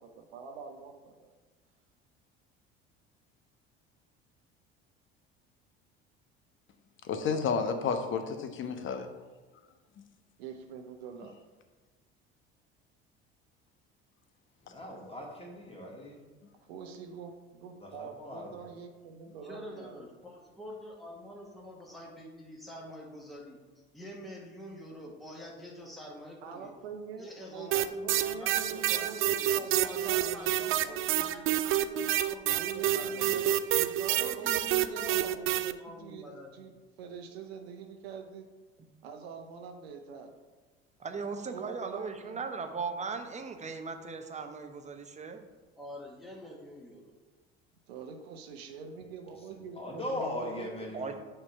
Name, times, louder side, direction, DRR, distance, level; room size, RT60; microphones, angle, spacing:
voice 1, 0.2-1.3 10.4-11.4 16.0-16.1 16.6-20.0 26.4-31.5 32.6-38.5 39.0-40.3 41.5-42.4 47.9-51.0, right 6 dB, 80° right, 4 dB, 0.7 m, -44 dB
voice 2, 7.0-9.1 10.0-10.1, left 5 dB, 40° left, 7 dB, 0.8 m, -31 dB
voice 3, 14.6-16.2 17.8-18.5 49.7-51.2, left 1 dB, 20° left, -2 dB, 2.0 m, -39 dB
voice 4, 19.5-23.6 23.9-26.7 27.2-33.5 34.2-35.4 35.8-36.5 45.8-47.1, equal, ahead, -2 dB, 1.3 m, -46 dB
sound 1, 27.7-35.7, right 13 dB, 45° right, 0.4 m, -28 dB
voice 5, 41.0-45.4 50.9-51.1, right 4 dB, 20° right, 6 dB, 0.8 m, -38 dB
6.5 x 3.0 x 5.6 m, 1.3 s
hypercardioid pair, 65°, 31 cm